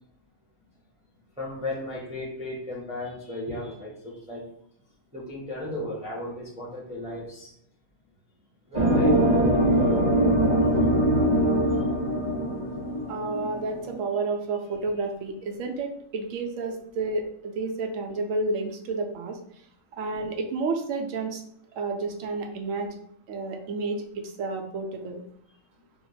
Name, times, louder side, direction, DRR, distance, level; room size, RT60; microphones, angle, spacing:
voice 1, 1.4-4.4 5.1-7.5 8.7-9.1, left 1 dB, 5° right, -6 dB, 0.7 m, -35 dB
sound 1, 8.7-14.0, right 1 dB, 45° right, 0.5 m, -22 dB
voice 2, 13.1-19.4 19.9-21.4 21.8-22.9 23.3-25.2, right 3 dB, 80° right, 3 dB, 1.0 m, -30 dB
2.9 x 2.1 x 3.9 m, 0.69 s
omnidirectional pair, 1.4 m